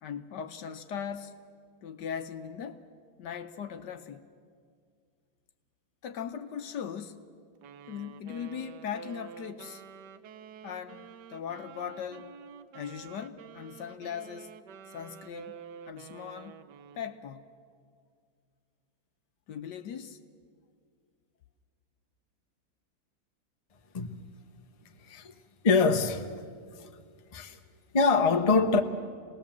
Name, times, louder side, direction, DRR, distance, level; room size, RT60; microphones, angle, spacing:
voice 1, 0.0-1.4 1.8-2.8 3.2-4.3 6.0-7.3 7.9-9.8 10.6-12.4 12.7-14.5 14.9-15.6 15.9-16.6 16.9-17.5 19.5-20.2, left 8 dB, 65° left, 1.4 m, -39 dB
Wind instrument woodwind instrument, 7.6-17.2, right 8 dB, 65° right, 1.3 m, -49 dB
voice 2, 25.6-26.3 26.8-26.9 27.3-27.6 27.9-28.8, left 4 dB, 30° left, 0.8 m, -24 dB
26.5 x 19.0 x 7.3 m
omnidirectional pair, 2.1 m